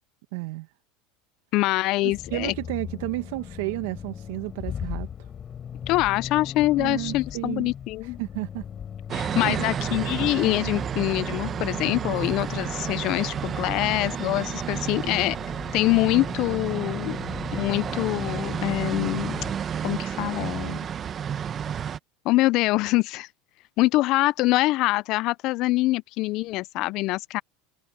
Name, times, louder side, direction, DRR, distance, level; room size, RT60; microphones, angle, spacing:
voice 1, 0.3-0.7 2.0-5.1 6.8-7.7 8.0-8.7 9.5-9.7, right 22 dB, 75° right, 1.0 m, -32 dB
voice 2, 1.5-2.5 5.9-8.2 9.1-15.4 15.7-17.2 17.5-19.4 19.8-20.8 22.2-23.3 23.8-27.4, left 19 dB, 55° left, 0.4 m, -24 dB
Accelerating revving vroom, 2.1-19.6, left 8 dB, 35° left, 3.6 m, -39 dB
Busy City Street from a balcony, 9.1-22.0, right 8 dB, 30° right, 1.2 m, -31 dB
supercardioid pair, 115°, 0 cm